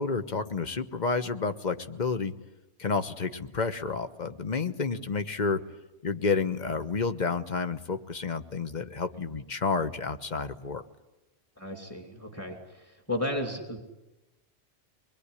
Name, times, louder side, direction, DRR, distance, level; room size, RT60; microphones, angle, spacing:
voice 1, 0.0-2.3 2.8-5.6 6.0-10.8, left 4 dB, 40° left, 10 dB, 1.3 m, -30 dB
voice 2, 11.6-13.8, left 1 dB, 10° left, 2 dB, 2.9 m, -34 dB
24.5 x 21.5 x 9.9 m, 1.0 s
omnidirectional pair, 1.3 m